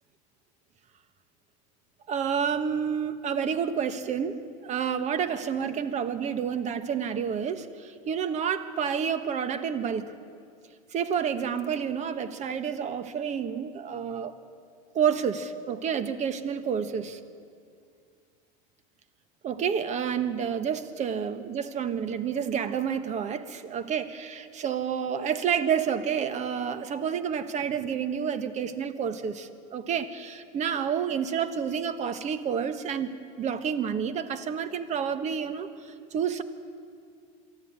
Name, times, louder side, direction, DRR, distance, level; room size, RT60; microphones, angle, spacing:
voice 1, 2.1-10.0 10.9-14.3 14.9-17.2 19.4-35.7 36.1-36.4, right 7 dB, 40° right, 12 dB, 1.3 m, -29 dB
23.5 x 13.5 x 8.8 m, 2.3 s
supercardioid pair, 110°, 18 cm